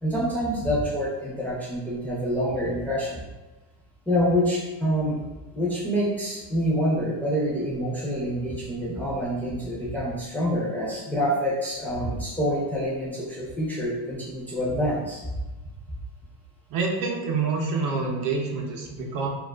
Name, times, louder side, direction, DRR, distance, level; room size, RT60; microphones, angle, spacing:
voice 1, 0.0-3.2 4.1-5.2 5.5-15.2, equal, 5° left, -7 dB, 0.4 m, -26 dB
voice 2, 16.7-19.3, right 4 dB, 55° right, 0 dB, 0.6 m, -27 dB
2.4 x 2.3 x 2.2 m, 1.1 s
cardioid pair, 135°, 39 cm